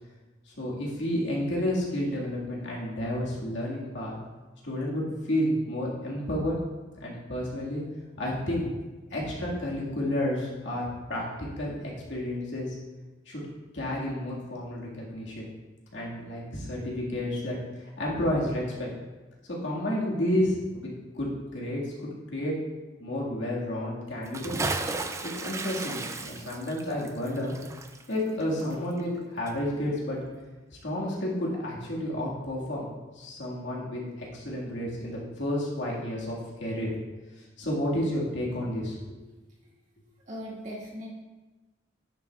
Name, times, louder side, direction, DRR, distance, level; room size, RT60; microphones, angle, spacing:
voice 1, 0.5-4.2 4.6-6.5 7.0-7.8 8.2-8.7 9.1-12.7 13.3-13.4 13.7-15.5 15.9-17.6 18.0-18.9 19.6-22.5 23.0-24.5 25.3-27.6 28.1-30.2 30.8-32.9 33.1-36.9 37.6-39.2, left 1 dB, 75° left, -4 dB, 1.8 m, -31 dB
Bathtub (filling or washing) / Splash splatter, 24.2-29.2 29.5-29.6, right 3 dB, 15° right, 0.4 m, -34 dB
voice 2, 40.3-41.1, equal, 40° right, -5 dB, 2.0 m, -38 dB
10.5 x 7.4 x 2.3 m, 1.2 s
head